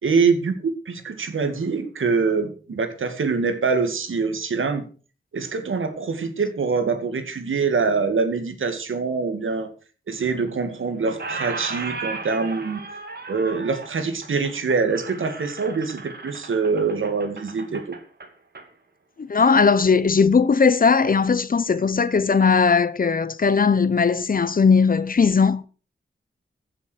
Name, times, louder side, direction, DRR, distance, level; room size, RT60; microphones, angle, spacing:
voice 1, 0.0-4.9 5.3-9.7 10.1-12.8 13.3-18.0, right 4 dB, 75° right, 2.3 m, -24 dB
Squeak, 10.2-10.8 11.1-18.7, right 3 dB, 50° right, 2.7 m, -36 dB
voice 2, 19.3-25.6, left 5 dB, 45° left, 0.9 m, -18 dB
15.0 x 7.3 x 6.5 m
wide cardioid pair, 135°, 20 cm